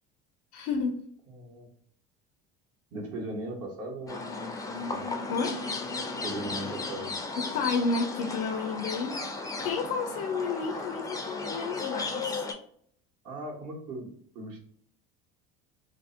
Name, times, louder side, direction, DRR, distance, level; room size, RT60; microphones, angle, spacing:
voice 1, 0.5-1.0 5.3-5.6 7.4-9.2 9.6-12.4, left 4 dB, 70° left, 4 dB, 0.5 m, -31 dB
voice 2, 1.3-1.7 2.9-4.3 4.9-5.0 6.2-7.1 13.2-14.6, right 1 dB, 50° right, 0 dB, 1.0 m, -38 dB
sound 1, 4.1-12.5, left 3 dB, 10° left, 0.4 m, -35 dB
2.5 x 2.0 x 2.4 m, 0.63 s
hypercardioid pair, 75°, 31 cm